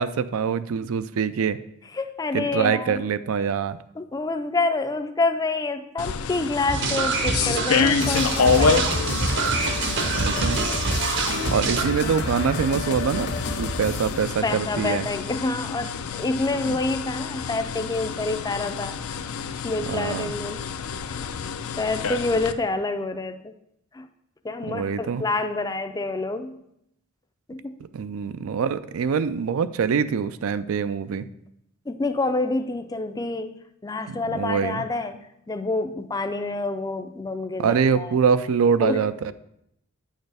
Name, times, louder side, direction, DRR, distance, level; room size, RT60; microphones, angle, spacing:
voice 1, 0.0-1.6 2.3-3.8 10.1-10.6 11.5-15.1 16.7-16.8 19.9-20.3 24.7-25.2 27.9-31.3 34.1-34.8 37.6-39.3, right 6 dB, 70° right, 14 dB, 0.4 m, -24 dB
voice 2, 1.9-3.0 4.0-9.2 14.1-14.2 14.4-18.9 19.6-20.6 21.1-21.3 21.7-23.5 23.9-24.1 24.4-26.6 27.5-27.8 31.9-33.6 33.8-38.2 38.8-39.0, left 3 dB, 15° left, 8 dB, 0.4 m, -28 dB
sound 1, 6.0-22.5, left 5 dB, 75° left, 0.5 m, -28 dB
sound 2, 6.7-11.8, right 3 dB, 55° right, 0.8 m, -25 dB
sound 3, 8.0-14.3, left 2 dB, 50° left, 0.8 m, -31 dB
8.8 x 6.5 x 3.4 m, 0.78 s
head